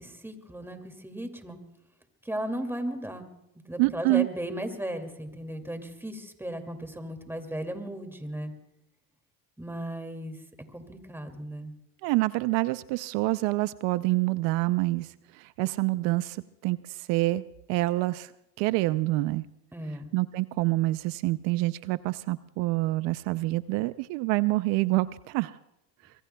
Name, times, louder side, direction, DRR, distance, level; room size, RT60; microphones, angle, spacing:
voice 1, 0.0-1.6 2.2-3.3 3.7-8.5 9.6-10.4 10.7-11.7 19.7-20.1, right 1 dB, 5° right, 6 dB, 2.4 m, -36 dB
voice 2, 3.8-4.3 12.0-15.1 15.3-17.4 17.7-18.3 18.6-19.4 20.1-25.6, right 20 dB, 75° right, 15 dB, 0.6 m, -27 dB
24.5 x 22.5 x 2.3 m, 0.85 s
supercardioid pair, 85°, 44 cm